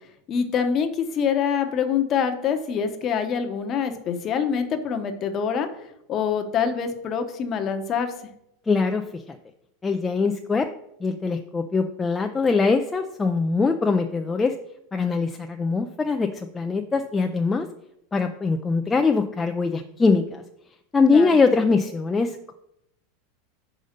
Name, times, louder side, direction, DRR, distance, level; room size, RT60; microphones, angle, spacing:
voice 1, 0.3-5.7 6.1-8.1 21.1-21.4, left 7 dB, 30° left, 7 dB, 0.8 m, -25 dB
voice 2, 8.7-9.4 9.8-10.7 11.0-14.6 14.9-17.7 18.1-20.4 20.9-22.5, left 4 dB, 10° left, 5 dB, 0.3 m, -22 dB
5.3 x 5.0 x 6.5 m, 0.79 s
supercardioid pair, 160°, 0 cm